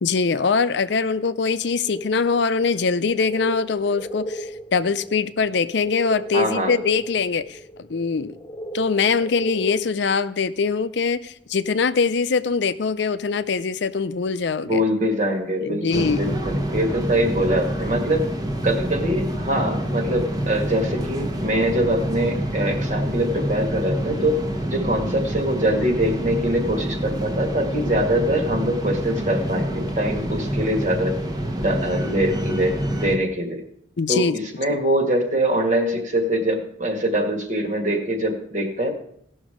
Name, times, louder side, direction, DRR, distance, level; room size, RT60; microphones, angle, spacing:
voice 1, 0.0-8.4 8.7-14.8 15.6-16.3 34.0-34.4, left 5 dB, 65° left, 13 dB, 0.5 m, -23 dB
sound 1, 1.9-9.8, right 1 dB, 15° left, 0.8 m, -36 dB
voice 2, 6.3-6.7 14.6-18.3 18.6-24.4 24.7-31.2 31.6-33.6 34.1-38.9, right 1 dB, 40° right, 4 dB, 1.8 m, -23 dB
sound 2, 15.9-33.2, right 1 dB, 20° right, 1.1 m, -27 dB
16.5 x 6.3 x 5.0 m, 0.71 s
head